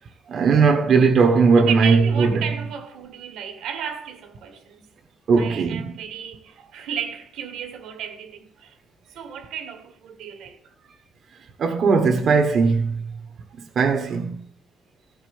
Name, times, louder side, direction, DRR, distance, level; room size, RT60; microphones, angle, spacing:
voice 1, 0.3-2.5 5.3-5.9 11.6-13.0 13.7-14.4, right 5 dB, 55° right, 1.3 m, -18 dB
voice 2, 1.6-4.9 5.4-8.8 9.1-10.6, right 8 dB, 85° right, 1.9 m, -33 dB
15.0 x 5.2 x 7.8 m
cardioid pair, 90°, 0 cm